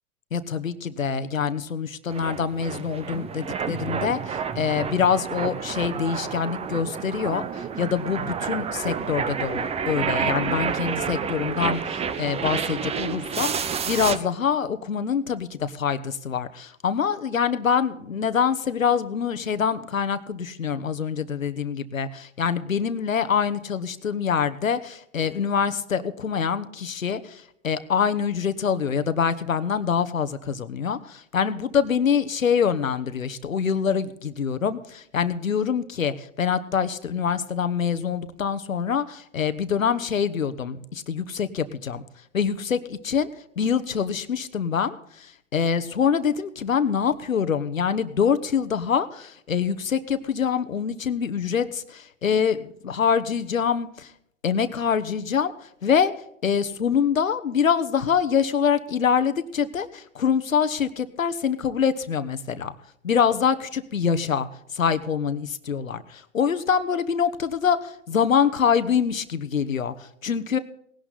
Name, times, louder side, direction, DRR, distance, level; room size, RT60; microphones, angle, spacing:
voice 1, 0.3-13.5 13.9-42.0 42.3-43.3 43.6-54.1 54.4-56.1 56.4-62.7 63.0-64.5 64.7-70.6, left 7 dB, 85° left, 11 dB, 1.2 m, -25 dB
sound 1, 2.1-14.2, right 6 dB, 15° right, 0.8 m, -29 dB
18.5 x 11.5 x 4.1 m, 0.73 s
hypercardioid pair, 110°, 39 cm